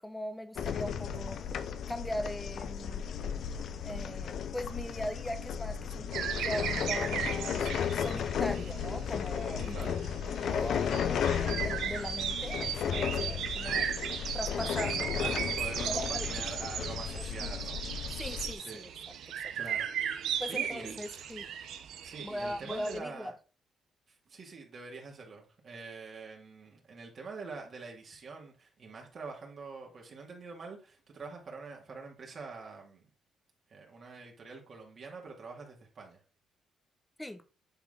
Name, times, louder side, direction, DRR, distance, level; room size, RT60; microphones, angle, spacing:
voice 1, 0.0-3.1 3.8-6.1 6.4-7.7 8.0-9.9 10.3-13.9 14.3-15.6 15.9-16.3 17.4-17.5 18.1-18.9 19.4-19.5 20.4-21.5 22.2-23.3 37.2-37.4, left 1 dB, 10° left, 0.8 m, -40 dB
sound 1, 0.6-18.5, left 7 dB, 65° left, 0.6 m, -34 dB
sound 2, 6.1-23.0, right 9 dB, 80° right, 0.8 m, -37 dB
voice 2, 15.6-17.9 18.5-18.8 19.5-21.0 22.0-23.3 24.1-33.1 33.7-36.2, right 4 dB, 50° right, 2.2 m, -45 dB
9.0 x 3.6 x 3.7 m
cardioid pair, 90°, 0 cm